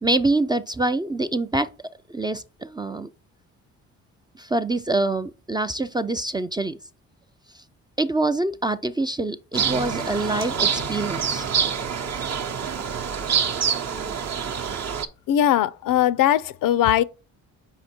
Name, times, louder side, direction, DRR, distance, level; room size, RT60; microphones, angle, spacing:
voice 1, 0.0-1.7 2.1-3.1 4.4-6.8 8.0-11.5, right 2 dB, 15° right, 0.3 m, -25 dB
sound 1, 9.5-15.1, right 7 dB, 45° right, 0.8 m, -26 dB
voice 2, 15.3-17.0, left 11 dB, 65° left, 0.5 m, -20 dB
5.8 x 4.5 x 4.3 m
supercardioid pair, 60°, 36 cm